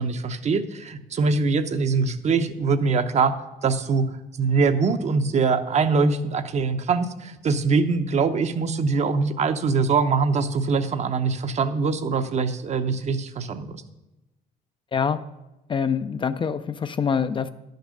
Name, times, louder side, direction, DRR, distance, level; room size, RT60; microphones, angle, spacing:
voice 1, 0.0-4.0 4.4-13.7, right 4 dB, 40° right, 9 dB, 0.8 m, -23 dB
voice 2, 15.7-17.5, left 6 dB, 30° left, 11 dB, 0.5 m, -25 dB
10.5 x 6.6 x 6.4 m, 0.99 s
cardioid pair, 110°, 17 cm